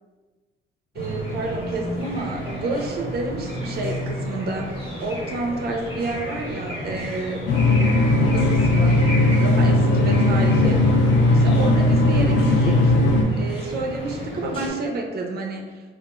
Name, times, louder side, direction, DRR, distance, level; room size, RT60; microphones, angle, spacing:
sound 1, 0.9-14.7, equal, 25° left, 0.9 m, -32 dB
voice 1, 0.9-7.5 8.2-11.0 11.3-12.9 13.3-15.8, right 2 dB, 55° right, 2 dB, 0.5 m, -29 dB
sound 2, 7.5-13.2, left 2 dB, 65° left, 0.4 m, -17 dB
2.4 x 2.2 x 2.9 m, 1.3 s
cardioid pair, 90°, 20 cm